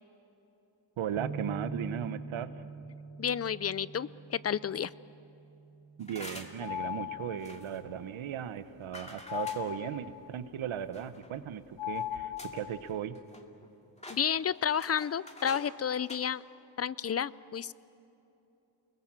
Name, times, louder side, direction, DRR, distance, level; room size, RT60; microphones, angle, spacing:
voice 1, 1.0-2.6 6.0-13.2, right 9 dB, 80° right, 12 dB, 1.1 m, -37 dB
sound 1, 1.2-7.4, right 3 dB, 30° right, 1.2 m, -45 dB
voice 2, 3.2-4.9 14.1-16.4 16.8-17.7, left 8 dB, 35° left, 19 dB, 0.5 m, -31 dB
sound 2, 6.0-6.7 7.4-7.8 8.9-9.7 10.9-11.4 12.0-12.1 12.4-12.7 12.9-13.7 14.0-15.7 16.0-16.2, left 1 dB, 15° left, 2.3 m, -47 dB
sound 3, 6.6-7.6 9.3-10.3 11.8-12.9, left 13 dB, 65° left, 1.0 m, -37 dB
29.5 x 21.0 x 7.5 m, 2.9 s
cardioid pair, 100°, 47 cm